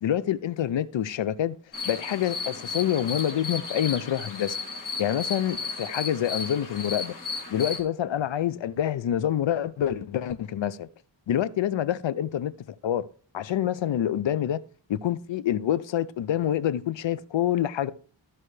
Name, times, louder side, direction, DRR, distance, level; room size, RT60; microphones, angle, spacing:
voice 1, 0.0-1.6 1.9-4.6 5.0-7.1 7.5-10.9 11.3-13.1 13.3-14.6 14.9-17.9, left 10 dB, 70° left, 0.6 m, -27 dB
sound 1, 1.7-7.8, left 4 dB, 40° left, 2.2 m, -34 dB
14.0 x 5.5 x 3.2 m
wide cardioid pair, 130°, 46 cm